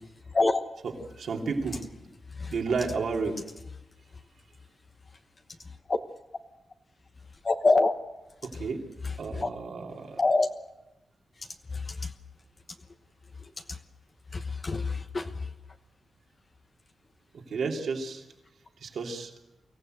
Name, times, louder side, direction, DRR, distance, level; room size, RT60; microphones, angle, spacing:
voice 1, 0.3-0.6 2.3-2.5 5.6-6.0 7.4-8.0 9.4-9.5 10.2-10.5 11.4-12.1 13.4-13.8 14.3-15.5, left 3 dB, 40° left, 6 dB, 1.1 m, -26 dB
voice 2, 1.1-1.8 2.5-3.4 8.4-8.8 9.1-10.2 17.3-18.3 18.8-19.3, right 4 dB, 80° right, 1 dB, 3.2 m, -32 dB
24.0 x 15.5 x 8.0 m, 0.95 s
wide cardioid pair, 95°, 0 cm